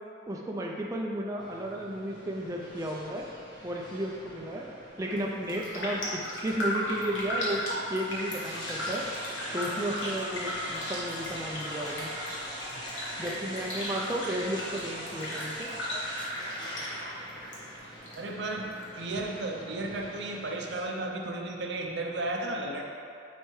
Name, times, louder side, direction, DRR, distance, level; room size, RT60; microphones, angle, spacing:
voice 1, 0.3-3.3 3.6-4.6 5.0-7.6 7.9-9.1 9.5-12.1 13.2-15.7, right 1 dB, 15° right, -2 dB, 0.4 m, -33 dB
sound 1, 1.4-20.8, equal, 25° left, 1.0 m, -45 dB
Raindrop, 5.0-5.2 5.5-17.6 17.8-18.8 19.2-19.3, left 1 dB, 80° left, 1.3 m, -36 dB
sound 2, 8.0-16.3, equal, 65° left, 1.5 m, -40 dB
voice 2, 18.1-22.8, right 2 dB, 65° right, 1 dB, 0.6 m, -34 dB
9.3 x 3.3 x 3.2 m, 2.6 s
head